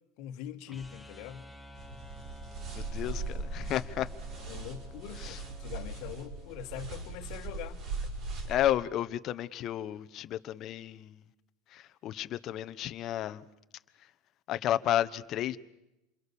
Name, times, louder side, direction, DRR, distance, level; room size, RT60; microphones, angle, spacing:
voice 1, 0.2-1.4 4.4-7.8, left 11 dB, 60° left, 1.7 m, -43 dB
sound 1, 0.7-6.8, equal, 5° left, 2.1 m, -51 dB
sound 2, 1.8-8.7, right 3 dB, 45° right, 5.9 m, -39 dB
voice 2, 2.8-4.1 5.2-5.4 8.5-11.2 11.7-13.4 14.5-15.6, left 12 dB, 45° left, 1.1 m, -32 dB
28.0 x 23.0 x 7.1 m
supercardioid pair, 105°, 0 cm